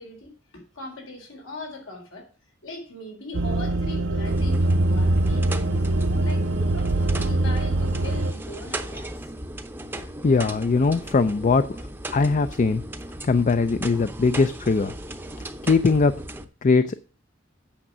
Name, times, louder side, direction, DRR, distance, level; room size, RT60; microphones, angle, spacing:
voice 1, 0.0-2.3 2.6-9.3, left 1 dB, 80° left, 3.9 m, -40 dB
sound 1, 3.3-8.3, right 2 dB, 65° right, 0.6 m, -23 dB
sound 2, 4.2-16.4, right 1 dB, 10° right, 0.7 m, -37 dB
voice 2, 10.2-11.6 12.1-12.8 13.2-14.9 15.6-16.1 16.6-17.0, left 4 dB, 40° left, 0.4 m, -20 dB
8.7 x 6.5 x 6.0 m
head